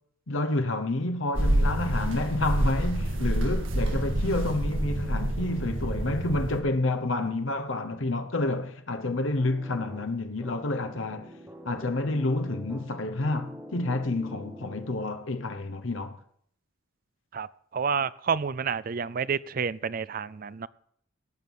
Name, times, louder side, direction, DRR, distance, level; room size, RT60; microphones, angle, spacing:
voice 1, 0.3-11.3 11.6-16.2, left 2 dB, 75° left, 1.1 m, -29 dB
sound 1, 1.3-6.6, right 1 dB, 75° right, 2.0 m, -27 dB
sound 2, 9.4-15.3, equal, 10° right, 1.5 m, -45 dB
voice 2, 17.7-20.7, right 6 dB, 45° right, 0.4 m, -29 dB
18.0 x 6.3 x 5.4 m
head